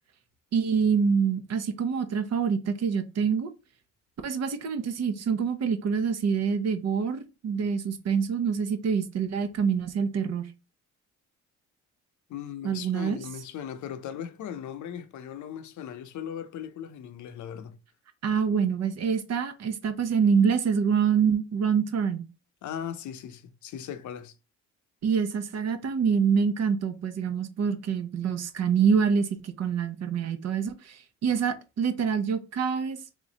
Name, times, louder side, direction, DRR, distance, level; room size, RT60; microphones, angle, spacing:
voice 1, 0.5-3.5 4.2-10.5 12.6-13.2 18.2-22.3 25.0-33.0, right 6 dB, 60° right, 0.8 m, -26 dB
voice 2, 12.3-17.8 22.6-24.4, left 9 dB, 75° left, 0.7 m, -38 dB
3.7 x 3.1 x 4.0 m
cardioid pair, 90°, 30 cm